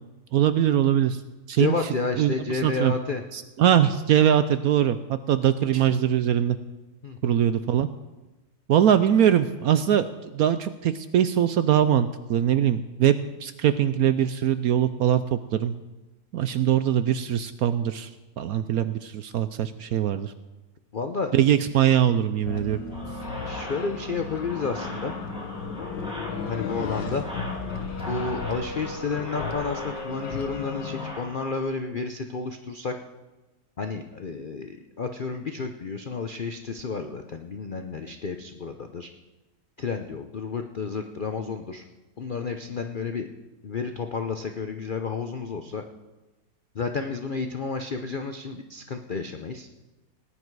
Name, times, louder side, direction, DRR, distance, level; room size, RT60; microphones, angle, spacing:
voice 1, 0.3-1.2 1.5-1.8 2.2-2.9 3.3-6.6 7.2-7.9 8.7-13.1 13.4-15.7 16.3-18.1 18.4-20.3 21.3-22.8, right 10 dB, 70° right, 12 dB, 0.9 m, -22 dB
voice 2, 1.6-3.2 7.0-7.4 20.9-21.3 23.4-25.1 26.5-27.2 28.1-33.0 33.8-39.1 39.8-41.8 42.2-43.3 43.6-45.8 46.7-49.7, left 4 dB, 60° left, 6 dB, 0.5 m, -31 dB
sound 1, 22.4-31.1, left 4 dB, 85° left, 1.9 m, -34 dB
sound 2, 22.9-31.6, left 1 dB, 5° right, 3.0 m, -40 dB
19.0 x 10.0 x 4.7 m, 1.1 s
omnidirectional pair, 1.9 m